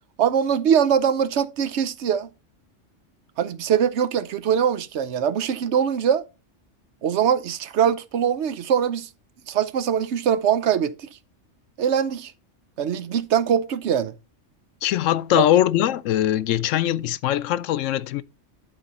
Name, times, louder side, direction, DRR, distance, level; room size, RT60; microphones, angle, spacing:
voice 1, 0.2-2.3 3.4-6.2 7.0-9.1 9.5-11.1 11.8-12.3 12.8-14.1 15.3-15.4, right 8 dB, 70° right, 0.9 m, -22 dB
voice 2, 14.8-18.2, left 12 dB, 90° left, 0.9 m, -21 dB
12.0 x 4.1 x 4.1 m
omnidirectional pair, 1.3 m